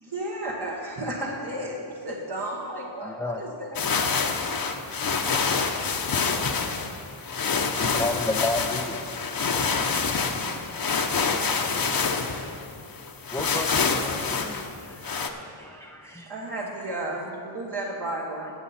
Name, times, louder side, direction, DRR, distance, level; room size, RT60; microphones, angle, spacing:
voice 1, 0.0-3.8 16.3-18.5, right 1 dB, 55° right, -3 dB, 1.2 m, -33 dB
voice 2, 3.0-3.4 6.9-7.0 7.8-9.1 13.3-16.3 17.1-17.2 18.4-18.5, left 2 dB, 5° left, 3 dB, 0.3 m, -32 dB
sound 1, 3.8-15.3, left 5 dB, 45° left, 0.8 m, -27 dB
17.5 x 6.8 x 4.2 m, 2.6 s
wide cardioid pair, 90°, 48 cm